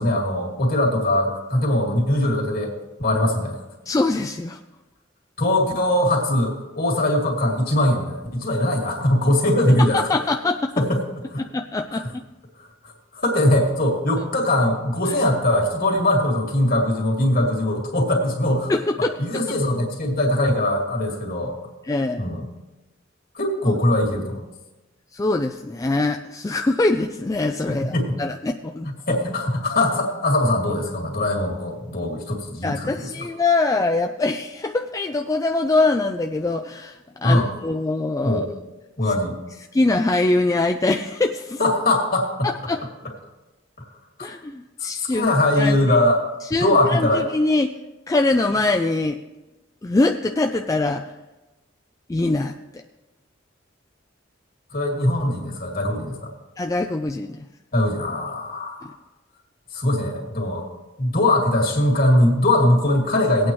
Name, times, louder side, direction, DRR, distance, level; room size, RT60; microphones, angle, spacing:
voice 1, 0.0-2.7 3.0-3.6 5.4-10.0 10.8-11.0 11.3-11.5 11.9-12.1 12.6-18.7 19.2-21.5 22.2-22.4 23.3-24.4 27.8-28.2 29.1-33.1 37.2-37.5 38.2-38.5 39.0-39.4 41.6-42.5 44.2-44.3 44.8-46.2 46.6-47.3 54.7-56.3 57.7-58.9 59.7-60.7 61.0-63.5, left 1 dB, 50° left, 0 dB, 2.3 m, -21 dB
voice 2, 3.9-4.6 9.9-10.7 11.4-12.2 15.0-15.1 18.7-19.2 21.8-22.2 23.7-23.8 25.1-28.9 32.6-38.4 39.7-41.6 42.4-42.8 44.2-45.8 46.5-47.7 48.1-49.2 49.8-51.0 52.1-52.8 56.6-57.5 58.8-58.9, left 2 dB, 15° left, 5 dB, 0.3 m, -23 dB
18.5 x 8.6 x 3.1 m, 1.1 s
head